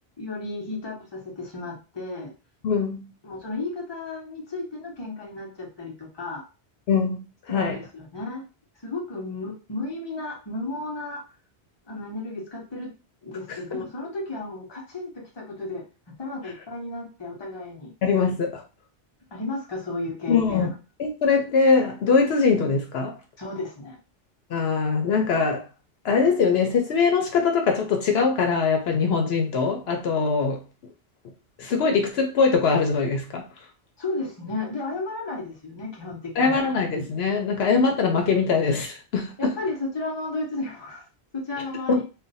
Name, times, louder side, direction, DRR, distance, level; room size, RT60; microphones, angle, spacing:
voice 1, 0.2-2.3 3.2-6.4 7.5-8.4 8.8-11.2 11.9-12.9 13.2-15.8 16.2-17.9 19.3-20.7 23.4-24.0 34.0-36.6 39.4-41.0 41.3-42.0, left 2 dB, 25° left, 0.9 m, -33 dB
voice 2, 2.6-3.1 6.9-7.2 7.5-7.8 13.7-13.9 18.0-18.6 20.3-20.7 21.0-23.1 24.5-25.6 26.0-30.6 31.6-33.5 36.4-39.5 41.9-42.0, left 5 dB, 75° left, 0.8 m, -22 dB
2.5 x 2.2 x 4.0 m
omnidirectional pair, 1.1 m